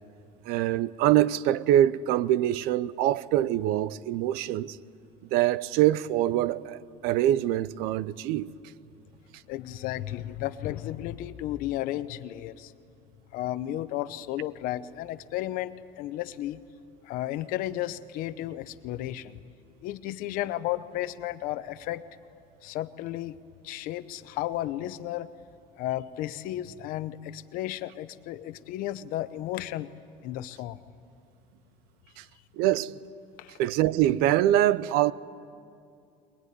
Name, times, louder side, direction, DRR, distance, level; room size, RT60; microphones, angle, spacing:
voice 1, 0.5-4.8 5.3-8.5 32.2-32.3 32.6-33.0 33.6-35.1, right 13 dB, 75° right, 0.7 m, -24 dB
voice 2, 9.5-12.7 13.3-16.6 17.0-19.4 19.8-22.0 22.6-23.4 23.6-25.3 25.8-29.9 30.2-30.8 33.4-33.6, left 14 dB, 60° left, 0.9 m, -33 dB
22.0 x 21.0 x 9.6 m
cardioid pair, 170°, 16 cm